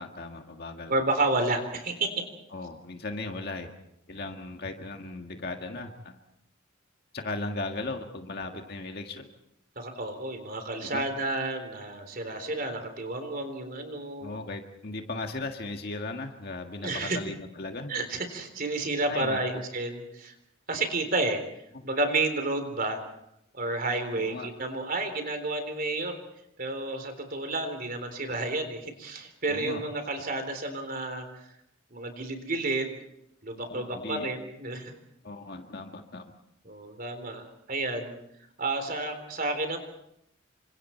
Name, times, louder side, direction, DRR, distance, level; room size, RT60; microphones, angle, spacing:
voice 1, 0.0-1.0 2.5-3.7 4.1-6.2 7.1-9.3 10.8-11.1 14.2-17.9 19.1-19.4 21.7-21.8 24.1-24.5 29.5-29.8 33.7-34.3 35.2-36.3, left 2 dB, 50° left, 4 dB, 1.8 m, -37 dB
voice 2, 0.9-2.2 9.8-14.3 16.8-17.2 17.9-20.3 20.7-21.4 21.8-23.0 23.5-26.2 26.6-31.3 31.9-33.0 33.4-34.9 36.7-38.2 38.6-39.8, right 2 dB, 45° right, 7 dB, 3.7 m, -31 dB
28.5 x 25.5 x 4.5 m, 0.79 s
head